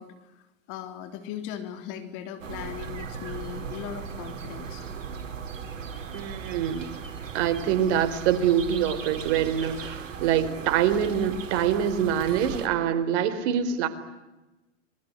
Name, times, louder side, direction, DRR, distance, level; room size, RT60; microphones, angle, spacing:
voice 1, 0.0-4.9, left 10 dB, 55° left, 8 dB, 3.4 m, -39 dB
sound 1, 2.4-12.7, right 6 dB, 85° right, 4.1 m, -37 dB
voice 2, 6.1-6.9 7.3-13.9, right 9 dB, 60° right, 10 dB, 4.1 m, -25 dB
26.5 x 23.0 x 9.7 m, 1.1 s
hypercardioid pair, 90°, 38 cm